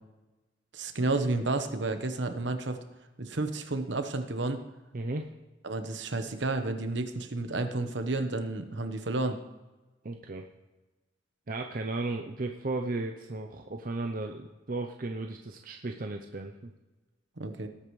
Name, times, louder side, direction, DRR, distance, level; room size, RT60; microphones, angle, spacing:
voice 1, 0.7-2.8 3.2-4.6 5.6-9.4 17.4-17.7, right 2 dB, 70° right, 7 dB, 1.1 m, -31 dB
voice 2, 4.9-5.3 10.0-10.5 11.5-16.7, right 2 dB, 45° right, 3 dB, 0.7 m, -35 dB
19.0 x 8.7 x 3.2 m, 1.1 s
head